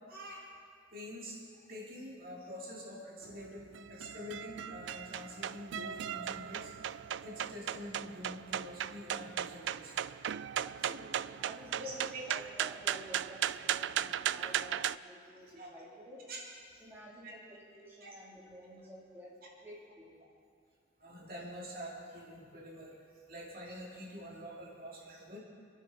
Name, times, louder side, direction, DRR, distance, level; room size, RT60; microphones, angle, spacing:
voice 1, 0.1-0.5 0.9-10.0 11.8-12.3 15.6-15.7 16.3-16.4 16.7-16.8 17.2-17.3 18.0-18.1 21.0-25.4, equal, 50° right, -4 dB, 2.7 m, -46 dB
sound 1, 3.2-15.0, right 10 dB, 75° right, 0.3 m, -37 dB
voice 2, 10.6-16.2 16.8-19.3 19.6-20.2, right 1 dB, 10° right, -7 dB, 3.1 m, -51 dB
27.5 x 11.0 x 4.2 m, 2.2 s
head